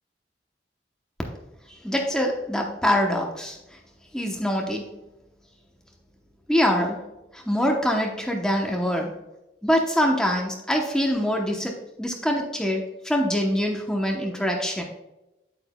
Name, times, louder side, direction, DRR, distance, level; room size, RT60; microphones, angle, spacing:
voice 1, 1.7-3.6 4.1-4.9 6.5-7.0 7.3-9.1 9.6-14.8, equal, 5° left, 1 dB, 0.9 m, -24 dB
8.7 x 8.6 x 2.3 m, 0.98 s
head